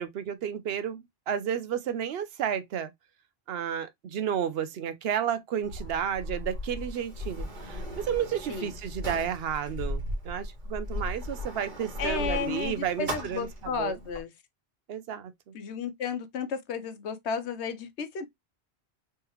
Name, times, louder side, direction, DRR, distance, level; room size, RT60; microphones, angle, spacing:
voice 1, 0.0-2.9 3.5-13.5 13.8-14.0 14.9-15.5, right 8 dB, 70° right, 0.8 m, -32 dB
Sliding door, 5.6-14.2, equal, 45° right, 1.4 m, -37 dB
voice 2, 12.0-14.3 15.5-18.3, left 6 dB, 80° left, 1.0 m, -33 dB
3.4 x 3.2 x 2.9 m
omnidirectional pair, 1.1 m